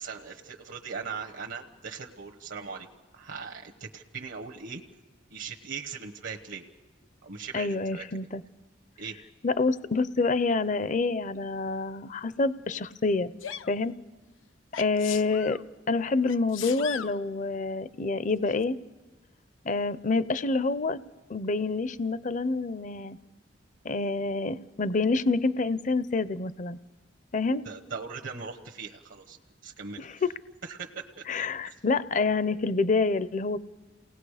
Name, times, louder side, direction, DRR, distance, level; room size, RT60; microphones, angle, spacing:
voice 1, 0.0-2.9 3.1-4.8 5.3-6.6 7.2-8.0 9.0-9.2 27.6-29.4 29.6-30.0 30.6-31.2 31.6-31.7, right 5 dB, 75° right, 2 dB, 1.1 m, -39 dB
voice 2, 7.5-8.4 9.4-13.3 13.7-13.9 14.8-15.6 15.9-18.8 19.6-21.0 21.3-23.2 23.8-26.8 27.3-27.6 30.0-30.2 31.3-33.6, left 3 dB, 40° left, 16 dB, 0.5 m, -27 dB
Sneeze, 13.4-13.7 14.7-15.6 16.3-17.2 18.5-18.6, left 9 dB, 85° left, 0.6 m, -38 dB
29.0 x 18.5 x 4.9 m, 1.2 s
head